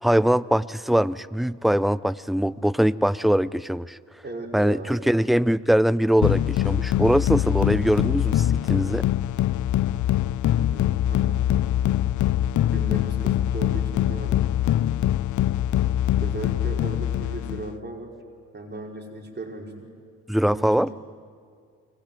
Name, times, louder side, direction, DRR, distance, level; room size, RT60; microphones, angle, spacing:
voice 1, 0.0-4.0 4.5-9.1 20.3-20.9, equal, ahead, 18 dB, 0.6 m, -22 dB
voice 2, 4.2-4.9 10.7-11.5 12.7-14.4 16.2-18.1 18.5-19.9 20.5-20.9, right 2 dB, 25° right, 1 dB, 5.1 m, -36 dB
sound 1, 6.2-17.7, left 12 dB, 50° left, 0.7 m, -23 dB
24.5 x 19.5 x 9.4 m, 2.1 s
hypercardioid pair, 50°, 39 cm